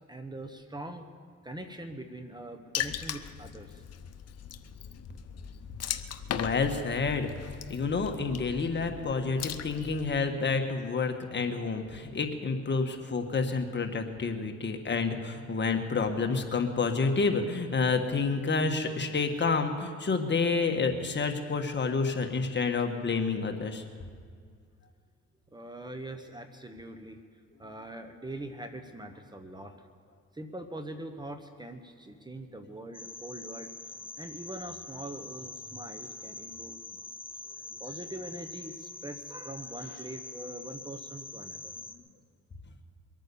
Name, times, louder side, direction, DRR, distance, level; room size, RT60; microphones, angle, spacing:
voice 1, 0.1-1.0 1.4-3.8 25.5-27.2 27.6-29.7 30.3-33.7 34.2-37.1 37.8-41.7, right 1 dB, 15° right, 7 dB, 1.2 m, -42 dB
Water / Splash splatter, 2.7-10.2, left 9 dB, 55° left, 0.8 m, -39 dB
voice 2, 6.3-7.3 7.7-23.8, left 4 dB, 35° left, 5 dB, 1.6 m, -29 dB
sound 1, 32.9-41.9, left 3 dB, 20° left, 1.0 m, -44 dB
22.5 x 9.1 x 7.0 m, 2.1 s
cardioid pair, 90°, 30 cm